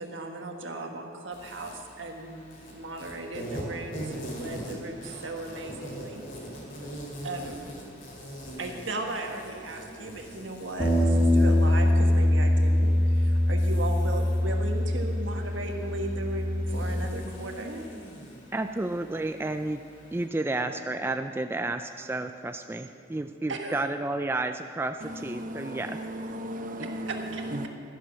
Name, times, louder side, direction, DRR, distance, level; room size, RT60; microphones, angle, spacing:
voice 1, 0.0-2.4 2.7-6.2 7.2-7.7 8.6-17.8 23.5-23.8 26.8-27.4, right 2 dB, 85° right, 3 dB, 1.5 m, -36 dB
Insect, 1.3-20.3, right 1 dB, 50° left, 2.7 m, -43 dB
Bass guitar, 10.8-17.0, left 1 dB, 30° left, 2.2 m, -23 dB
voice 2, 18.5-19.8 20.1-26.0, right 2 dB, 10° right, 7 dB, 0.3 m, -31 dB
voice 3, 25.0-27.7, right 1 dB, 45° right, 4 dB, 0.9 m, -36 dB
12.5 x 11.0 x 6.2 m, 2.3 s
head